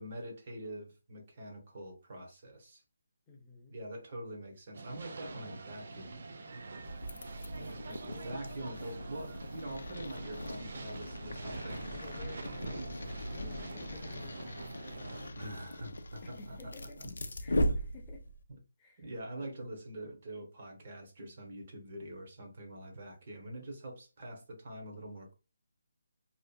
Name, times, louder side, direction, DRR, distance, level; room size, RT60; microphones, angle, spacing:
voice 1, 0.0-2.8 3.7-6.2 7.5-11.9 15.3-17.1 19.0-25.3, right 1 dB, 35° right, 0.8 m, -45 dB
voice 2, 3.3-3.8 7.3-7.5 7.8-8.3 11.9-15.5 16.2-17.0 17.4-18.2 18.8-19.5, left 4 dB, 10° left, 0.5 m, -54 dB
sound 1, 4.7-15.3, right 3 dB, 50° right, 0.3 m, -45 dB
sound 2, 6.8-18.4, equal, 75° left, 0.4 m, -39 dB
2.6 x 2.4 x 2.2 m
hypercardioid pair, 175°, 0 cm